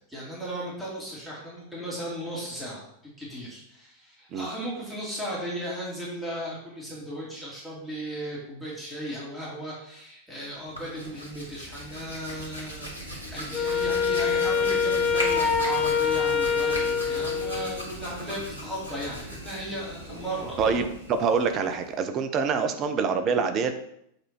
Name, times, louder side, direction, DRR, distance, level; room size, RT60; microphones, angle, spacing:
voice 1, 0.1-2.8 3.2-20.6, right 1 dB, 5° right, -6 dB, 3.0 m, -36 dB
Hands, 10.6-22.0, equal, 85° left, 1.6 m, -38 dB
Wind instrument woodwind instrument, 13.5-17.9, left 6 dB, 20° left, 0.8 m, -25 dB
voice 2, 20.6-23.7, right 5 dB, 35° right, 8 dB, 0.8 m, -25 dB
7.8 x 4.3 x 4.6 m, 0.74 s
figure-of-eight pair, 90°, 0 cm